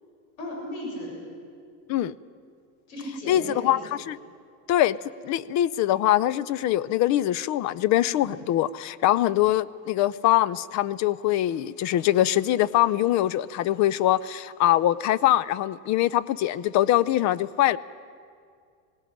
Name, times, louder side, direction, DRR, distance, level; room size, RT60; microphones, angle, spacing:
voice 1, 0.4-1.2 2.9-3.8 8.2-8.3, left 1 dB, 75° left, -1 dB, 7.6 m, -36 dB
voice 2, 3.3-4.2 4.7-5.0 5.2-17.8, left 13 dB, 40° left, 20 dB, 0.4 m, -23 dB
18.0 x 17.5 x 10.0 m, 2.3 s
supercardioid pair, 120°, 49 cm